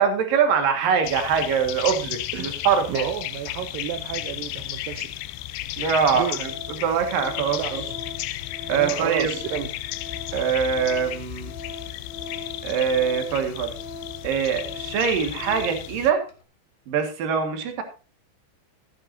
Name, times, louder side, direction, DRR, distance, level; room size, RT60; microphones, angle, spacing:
voice 1, 0.0-3.1 5.8-6.5 6.8-7.8 8.7-9.3 10.3-11.5 12.6-13.7 14.2-16.2 16.9-17.8, right 7 dB, 60° right, 6 dB, 3.2 m, -23 dB
sound 1, 1.0-16.1, left 15 dB, 80° left, 2.6 m, -34 dB
voice 2, 2.3-5.2 6.1-6.4 7.6-8.0 8.7-9.8, right 11 dB, 75° right, 8 dB, 2.1 m, -32 dB
Organ, 6.4-15.9 16.3-16.4, left 4 dB, 40° left, 1.8 m, -41 dB
14.5 x 10.5 x 2.7 m, 0.34 s
omnidirectional pair, 4.8 m